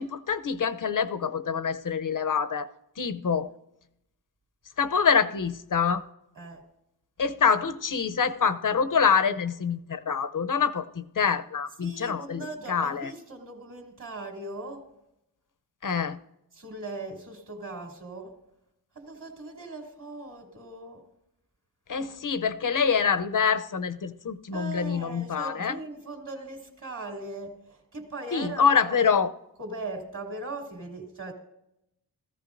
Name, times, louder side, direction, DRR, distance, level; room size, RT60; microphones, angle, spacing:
voice 1, 0.0-2.7 3.0-3.5 4.8-6.0 7.2-13.1 15.8-16.2 21.9-25.8 28.3-29.3, left 6 dB, 55° left, 11 dB, 0.7 m, -26 dB
voice 2, 11.8-14.9 16.5-18.3 18.9-21.0 24.5-29.0 29.6-31.3, right 2 dB, 50° right, 1 dB, 2.7 m, -39 dB
17.5 x 14.5 x 2.6 m, 0.84 s
wide cardioid pair, 115°, 38 cm